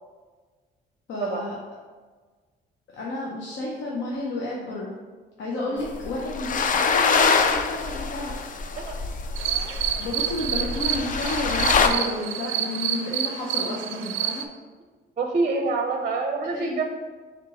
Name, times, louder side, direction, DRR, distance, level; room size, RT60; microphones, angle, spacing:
voice 1, 1.1-1.6 2.9-4.9 5.4-8.3 10.0-14.5 16.5-16.8, left 2 dB, 70° left, -4 dB, 0.8 m, -31 dB
sound 1, 5.9-11.9, left 5 dB, 45° left, 0.4 m, -24 dB
sound 2, 9.4-14.5, right 9 dB, 90° right, 0.4 m, -29 dB
voice 2, 15.2-16.8, right 3 dB, 35° right, 3 dB, 0.5 m, -26 dB
3.6 x 2.9 x 4.8 m, 1.4 s
cardioid pair, 90°, 20 cm